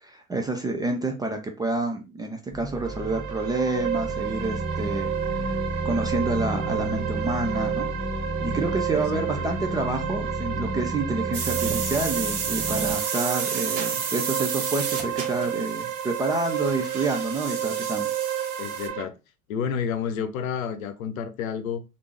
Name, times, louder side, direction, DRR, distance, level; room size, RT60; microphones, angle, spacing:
voice 1, 0.0-5.6 5.8-7.9 8.4-18.1, right 2 dB, 10° right, 0.3 m, -28 dB
sound 1, 2.5-12.9, right 1 dB, 15° left, 1.4 m, -32 dB
sound 2, 2.7-19.0, right 10 dB, 80° right, 0.8 m, -31 dB
voice 2, 8.9-9.6 18.6-19.1 19.5-21.8, left 7 dB, 70° left, 0.7 m, -30 dB
sound 3, 11.3-18.9, right 6 dB, 50° right, 1.1 m, -32 dB
3.3 x 2.5 x 3.1 m
hypercardioid pair, 85°, 42 cm